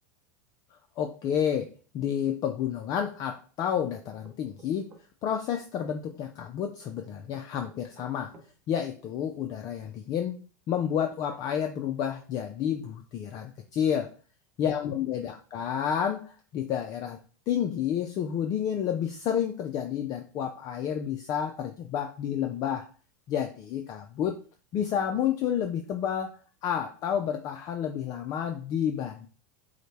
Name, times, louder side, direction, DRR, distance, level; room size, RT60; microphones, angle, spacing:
voice 1, 1.0-4.9 5.2-8.3 8.7-10.4 10.7-14.1 14.6-17.2 17.5-22.9 23.3-24.4 24.7-29.3, left 9 dB, 40° left, 5 dB, 0.4 m, -30 dB
sound 1, 3.9-5.4 6.9-8.5, right 2 dB, 20° right, 0.7 m, -53 dB
4.9 x 2.1 x 4.1 m, 0.39 s
supercardioid pair, 120°, 10 cm